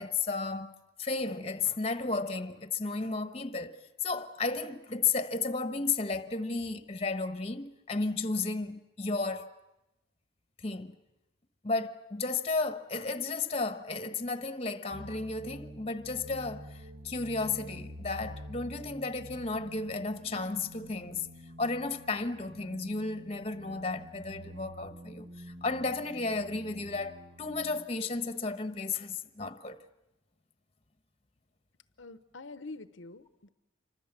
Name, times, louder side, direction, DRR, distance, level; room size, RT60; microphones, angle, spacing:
voice 1, 0.0-9.5 10.6-10.9 11.6-21.3 21.6-29.8, left 3 dB, 30° left, 1.1 m, -33 dB
sound 1, 14.9-27.9, right 1 dB, 50° right, 1.6 m, -48 dB
voice 2, 32.0-33.5, left 3 dB, 75° left, 0.9 m, -46 dB
27.5 x 25.0 x 7.4 m
head